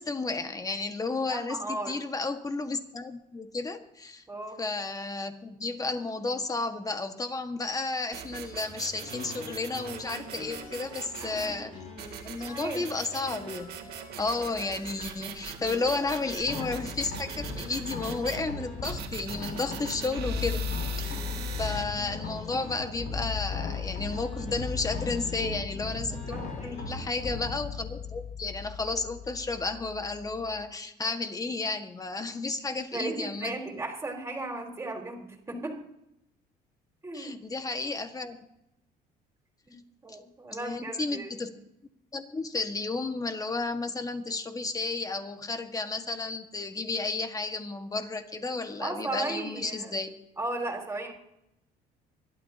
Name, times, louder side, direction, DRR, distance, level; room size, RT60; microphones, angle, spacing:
voice 1, 0.0-4.2 4.6-11.8 12.2-13.7 14.2-20.6 21.0-21.2 21.6-26.3 26.6-33.5 37.1-38.4 40.1-40.2 40.5-41.5 42.1-50.1, left 3 dB, 20° left, 7 dB, 1.6 m, -32 dB
voice 2, 1.3-1.9 4.3-4.6 11.2-11.6 12.4-12.8 26.3-26.9 32.7-35.8 37.0-37.4 39.7-41.3 48.8-50.0 50.4-51.1, right 2 dB, 15° right, 1 dB, 4.1 m, -36 dB
sound 1, 8.1-11.6 12.0-18.4 18.8-21.8, right 8 dB, 70° right, 2.3 m, -42 dB
sound 2, 9.0-19.0 19.4-27.0, left 2 dB, 50° left, 5.8 m, -47 dB
sound 3, 16.3-30.6, left 5 dB, 75° left, 5.9 m, -36 dB
25.5 x 12.5 x 2.9 m, 0.82 s
cardioid pair, 110°, 17 cm